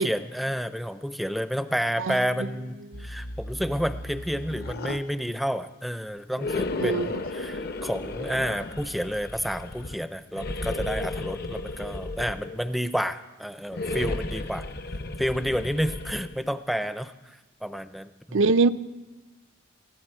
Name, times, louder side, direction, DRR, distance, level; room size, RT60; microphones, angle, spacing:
voice 1, 0.0-14.6 15.2-18.5, equal, ahead, 11 dB, 0.5 m, -30 dB
voice 2, 2.0-2.5 2.9-3.1 6.8-7.1 18.3-18.7, right 4 dB, 70° right, 14 dB, 0.5 m, -23 dB
sound 1, 2.9-5.0 6.4-10.0 10.3-12.7 13.7-16.4, left 2 dB, 50° left, 0.8 m, -34 dB
20.5 x 15.5 x 4.5 m, 1.2 s
head